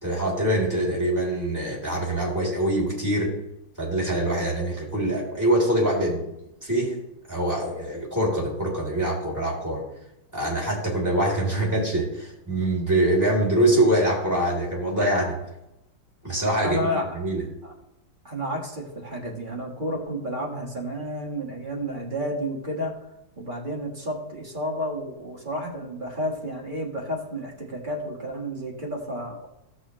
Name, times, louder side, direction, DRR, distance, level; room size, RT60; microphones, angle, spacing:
voice 1, 0.0-3.3 3.8-7.0 7.3-9.8 10.3-15.3 16.2-17.4, right 1 dB, 10° right, -4 dB, 3.2 m, -24 dB
voice 2, 16.6-17.1 17.6-17.7 18.2-23.0 23.4-29.5, equal, 25° right, -2 dB, 1.6 m, -31 dB
15.0 x 6.5 x 3.1 m, 0.89 s
omnidirectional pair, 2.1 m